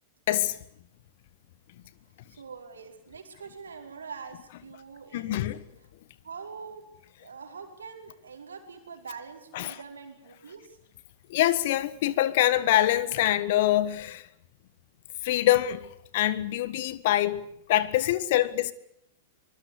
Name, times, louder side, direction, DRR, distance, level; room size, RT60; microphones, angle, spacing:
voice 1, 2.3-5.5 6.2-6.8 7.2-10.8, right 5 dB, 80° right, 4.9 m, -44 dB
voice 2, 5.1-5.6 9.5-9.7 11.3-14.3 15.2-15.9 16.1-17.4 17.7-18.7, left 14 dB, 55° left, 1.5 m, -24 dB
24.5 x 21.5 x 8.4 m
figure-of-eight pair, 100°, 0 cm